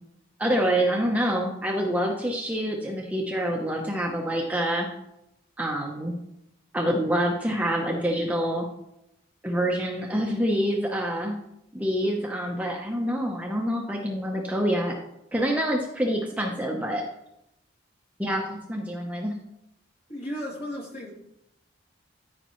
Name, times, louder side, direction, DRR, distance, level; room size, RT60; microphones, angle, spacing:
voice 1, 0.4-4.9 5.6-6.1 6.7-8.7 9.4-11.4 11.7-15.0 15.3-17.0 18.2-19.3, equal, 5° right, 0 dB, 0.8 m, -26 dB
voice 2, 20.1-21.1, equal, 45° left, -4 dB, 2.7 m, -34 dB
13.5 x 5.2 x 3.1 m, 0.84 s
head